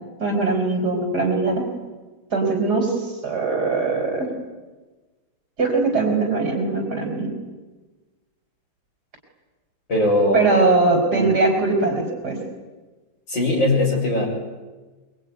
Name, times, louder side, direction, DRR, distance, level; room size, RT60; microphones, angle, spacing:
voice 1, 0.2-1.6 2.3-2.9 3.2-4.3 5.6-7.3 10.3-12.4, right 3 dB, 50° right, 3 dB, 5.2 m, -21 dB
voice 2, 9.9-10.5 11.1-11.3 13.3-14.3, left 1 dB, 60° left, 1 dB, 7.7 m, -20 dB
24.5 x 24.0 x 9.5 m, 1.2 s
omnidirectional pair, 2.2 m